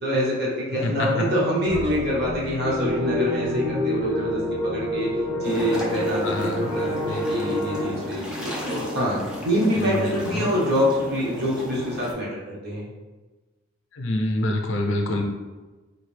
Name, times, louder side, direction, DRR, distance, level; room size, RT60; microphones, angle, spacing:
voice 1, 0.0-5.1 5.4-12.9, equal, 50° right, -5 dB, 1.0 m, -26 dB
voice 2, 0.7-1.3 6.2-6.7 9.7-10.5 13.9-15.2, left 1 dB, 60° left, 3 dB, 0.5 m, -26 dB
sound 1, 1.7-6.4, left 2 dB, 25° right, 0.9 m, -36 dB
sound 2, 2.6-7.9, left 1 dB, 80° right, 1.3 m, -27 dB
sound 3, 5.4-12.1, equal, 5° right, 0.5 m, -34 dB
3.9 x 2.6 x 3.2 m, 1.3 s
head